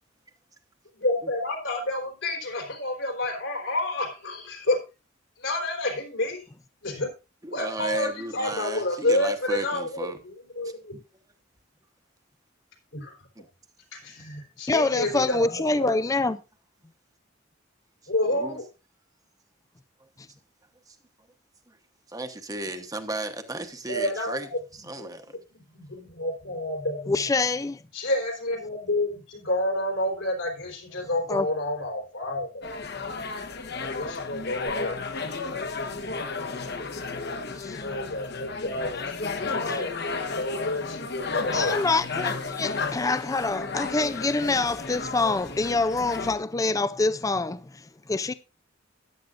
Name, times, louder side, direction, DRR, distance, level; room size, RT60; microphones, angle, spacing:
voice 1, 0.9-4.8 5.4-6.5 6.8-7.1 7.5-11.0 12.9-13.2 13.9-16.0 18.1-18.6 23.9-24.6 25.0-25.1 25.5-27.3 27.9-32.7 33.7-35.0 35.5-35.9 37.8-41.8, left 1 dB, 80° left, 4.1 m, -29 dB
voice 2, 7.4-10.2 10.6-10.7 13.4-13.5 18.3-18.6 20.9-21.0 21.7-21.8 22.1-24.5 24.7-25.4, right 2 dB, 20° right, 1.0 m, -34 dB
voice 3, 14.7-16.4 27.1-27.8 31.3-31.5 37.5-37.9 39.7-39.8 41.5-48.3, left 3 dB, 15° left, 0.4 m, -26 dB
Palm Springs Mexican Restaurant Patio Ambience, 32.6-46.4, left 4 dB, 55° left, 1.2 m, -33 dB
13.5 x 10.0 x 2.5 m
head